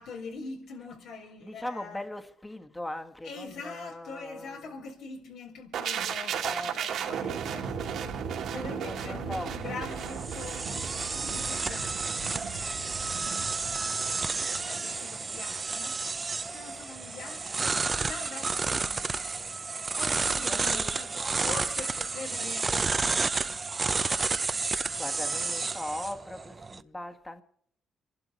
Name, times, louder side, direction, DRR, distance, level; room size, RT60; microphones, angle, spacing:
voice 1, 0.0-2.0 3.2-16.3 16.5-19.3 20.1-21.1 21.4-24.4, left 4 dB, 80° left, 4.5 m, -44 dB
voice 2, 1.4-4.8 6.4-6.8 7.2-7.4 8.5-9.5 19.9-21.3 24.7-27.4, left 1 dB, 15° left, 1.7 m, -40 dB
sound 1, 5.7-15.6 15.9-16.1, right 7 dB, 75° right, 2.7 m, -36 dB
sound 2, 9.6-26.8, right 4 dB, 30° right, 0.8 m, -31 dB
26.5 x 12.0 x 4.4 m
cardioid pair, 90°, 0 cm